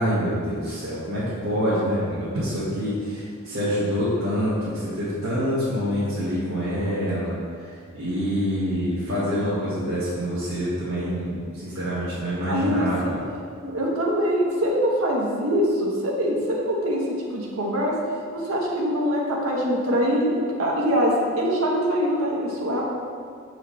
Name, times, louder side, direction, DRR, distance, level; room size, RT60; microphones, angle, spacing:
voice 1, 0.0-7.7 7.9-11.3 11.6-13.2, equal, 60° right, -12 dB, 1.6 m, -26 dB
voice 2, 12.5-13.1 13.6-18.0 18.3-22.8, equal, 80° right, -3 dB, 1.1 m, -23 dB
6.8 x 4.8 x 3.2 m, 2.1 s
head